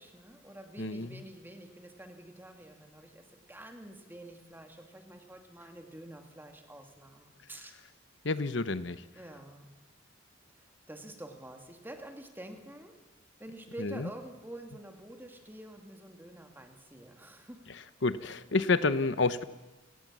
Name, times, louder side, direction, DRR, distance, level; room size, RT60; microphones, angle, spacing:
voice 1, 0.0-7.7 9.1-9.8 10.5-13.0 13.4-17.7, right 1 dB, 10° right, 4 dB, 2.5 m, -48 dB
voice 2, 0.8-1.1 8.2-9.0 13.8-14.1 18.0-19.4, left 3 dB, 60° left, 13 dB, 0.9 m, -29 dB
29.5 x 18.5 x 7.5 m, 1.1 s
head